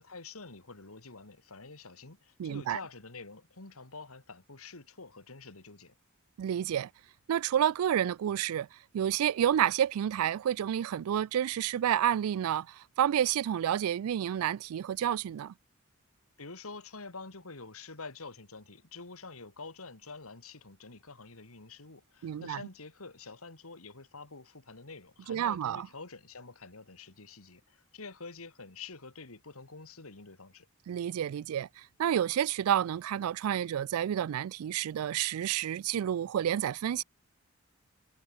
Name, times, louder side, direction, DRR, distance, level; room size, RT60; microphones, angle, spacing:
voice 1, 0.0-5.9 16.4-30.7, left 4 dB, 80° left, 2.6 m, -47 dB
voice 2, 2.4-2.8 6.4-6.9 7.3-8.7 8.9-15.5 22.2-22.6 25.3-25.9 30.9-31.7 32.0-37.0, right 10 dB, 90° right, 0.3 m, -29 dB
head